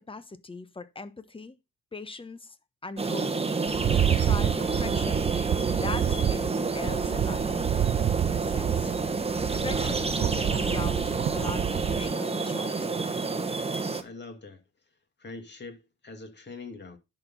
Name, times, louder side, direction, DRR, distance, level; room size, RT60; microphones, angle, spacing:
voice 1, 0.0-1.5 1.9-2.6 2.8-3.3 3.9-5.2 5.8-7.7 8.3-8.9 9.6-12.9, left 3 dB, 20° left, 1.0 m, -39 dB
sound 1, 3.0-14.0, right 4 dB, 20° right, 1.2 m, -29 dB
Rattle, 3.7-12.1, right 11 dB, 40° right, 0.4 m, -29 dB
voice 2, 14.0-14.6 15.2-17.0, left 3 dB, 35° left, 2.5 m, -43 dB
10.5 x 4.4 x 5.7 m
cardioid pair, 90°, 30 cm